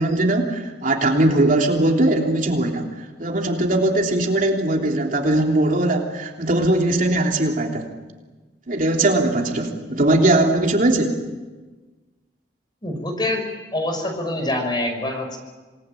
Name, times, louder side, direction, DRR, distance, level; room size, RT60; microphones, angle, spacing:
voice 1, 0.0-2.9 3.2-7.8 8.7-11.2, right 1 dB, 50° right, 1 dB, 3.3 m, -20 dB
voice 2, 12.8-15.4, left 1 dB, 25° left, 4 dB, 5.5 m, -25 dB
27.0 x 20.0 x 9.2 m, 1.3 s
head